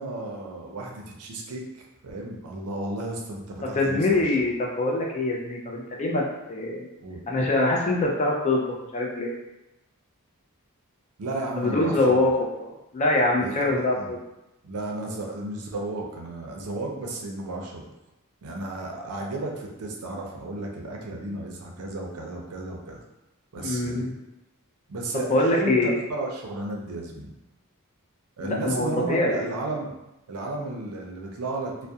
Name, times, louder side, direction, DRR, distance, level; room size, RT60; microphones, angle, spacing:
voice 1, 0.0-4.5 7.0-7.2 11.2-12.2 13.4-14.1 14.6-17.9 18.4-23.0 23.5-24.1 24.9-27.3 28.4-29.9 30.3-31.7, right 2 dB, 80° right, 0 dB, 0.5 m, -33 dB
voice 2, 3.6-6.2 6.5-6.9 7.3-9.3 11.6-12.3 12.6-14.2 23.6-24.1 25.3-26.0 28.4-29.5, left 2 dB, 30° left, -1 dB, 0.4 m, -24 dB
2.3 x 2.1 x 2.7 m, 0.94 s
head